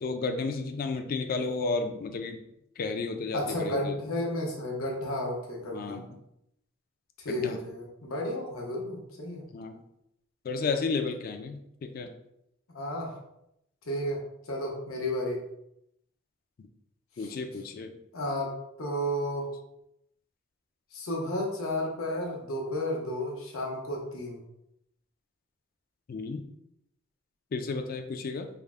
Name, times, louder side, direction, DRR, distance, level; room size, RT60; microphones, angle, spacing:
voice 1, 0.0-2.4 2.8-4.0 5.7-6.1 7.3-7.6 9.5-9.8 10.4-12.1 17.2-17.9 26.1-26.4 27.5-28.5, left 4 dB, 45° left, 6 dB, 0.3 m, -32 dB
voice 2, 3.3-6.0 7.2-9.4 12.7-13.1 13.9-14.2 14.4-15.4 17.2-17.4 18.1-18.5 18.8-19.5 20.9-24.4, left 1 dB, 85° left, -1 dB, 0.8 m, -32 dB
3.4 x 2.1 x 3.4 m, 0.79 s
head